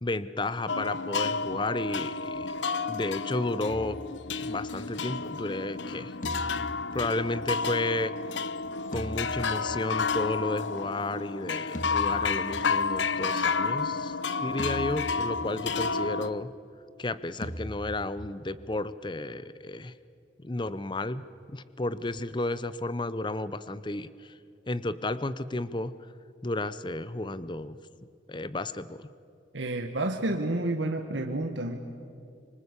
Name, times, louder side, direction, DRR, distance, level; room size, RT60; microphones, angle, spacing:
voice 1, 0.0-2.6 2.9-4.0 4.4-6.1 6.9-8.1 8.9-14.2 14.4-16.5 17.0-19.9 20.4-21.2 21.5-24.3 24.7-25.9 26.4-27.8 28.3-29.1, left 2 dB, 25° left, 15 dB, 0.7 m, -32 dB
sound 1, 0.7-16.3, left 4 dB, 85° left, 0.8 m, -31 dB
sound 2, 3.7-5.0 6.2-7.9 8.9-10.3 11.7-13.1 14.6-15.8 17.4-18.8, equal, 45° left, 1.8 m, -41 dB
voice 2, 29.5-31.8, right 2 dB, 90° right, 4 dB, 1.6 m, -30 dB
25.5 x 24.0 x 8.3 m, 2.4 s
head